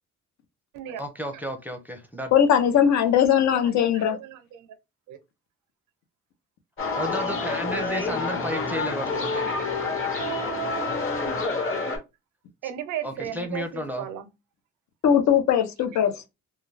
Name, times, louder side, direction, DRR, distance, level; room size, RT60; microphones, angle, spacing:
voice 1, 1.0-2.3 7.0-9.5 13.0-14.1, equal, 5° right, 0.5 m, -32 dB
voice 2, 2.3-4.2 15.0-16.2, left 9 dB, 65° left, 0.6 m, -20 dB
voice 3, 3.5-4.8 5.1-5.2 9.1-10.4 11.6-12.0 12.6-14.3 15.9-16.0, right 10 dB, 85° right, 0.5 m, -37 dB
sound 1, 6.8-12.0, left 3 dB, 45° left, 1.1 m, -28 dB
2.2 x 2.2 x 3.2 m
cardioid pair, 90°, 30 cm